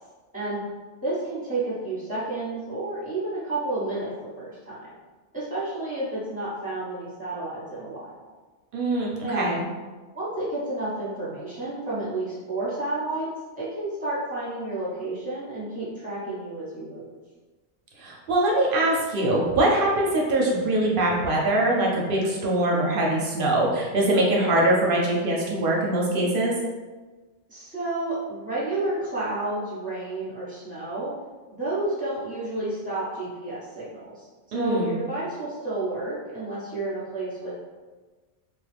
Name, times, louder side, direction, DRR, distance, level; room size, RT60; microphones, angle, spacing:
voice 1, 1.0-4.9 5.3-8.1 9.2-9.5 10.1-13.3 13.5-17.1 27.5-31.1 31.5-34.3 34.5-37.5, right 2 dB, 10° right, -9 dB, 1.1 m, -31 dB
voice 2, 8.7-9.6 18.0-26.5 34.5-35.0, right 1 dB, 60° right, -3 dB, 0.7 m, -23 dB
2.8 x 2.3 x 3.3 m, 1.3 s
omnidirectional pair, 1.1 m